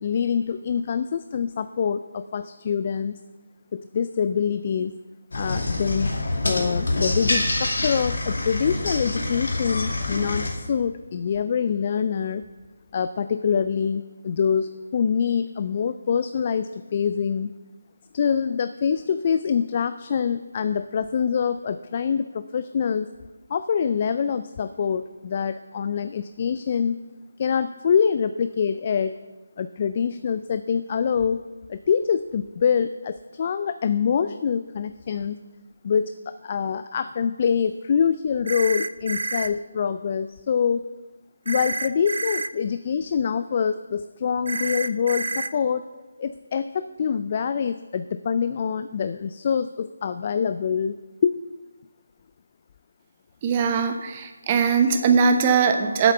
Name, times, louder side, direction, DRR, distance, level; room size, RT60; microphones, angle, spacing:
voice 1, 0.0-3.2 3.7-4.9 5.3-6.1 6.4-12.4 12.9-17.5 18.1-23.1 23.5-27.0 27.4-29.2 29.6-31.4 31.7-35.4 35.8-40.8 41.5-45.8 46.2-51.0 51.2-51.4, left 7 dB, 35° left, 11 dB, 0.4 m, -25 dB
sound 1, 5.3-10.5, left 2 dB, 65° left, 2.4 m, -26 dB
sound 2, 38.5-39.5 41.5-42.5 44.5-45.5, right 3 dB, 65° right, 0.5 m, -28 dB
voice 2, 53.4-56.1, right 6 dB, 25° right, 6 dB, 0.9 m, -20 dB
8.2 x 8.1 x 6.6 m, 1.2 s
figure-of-eight pair, 155°, 0 cm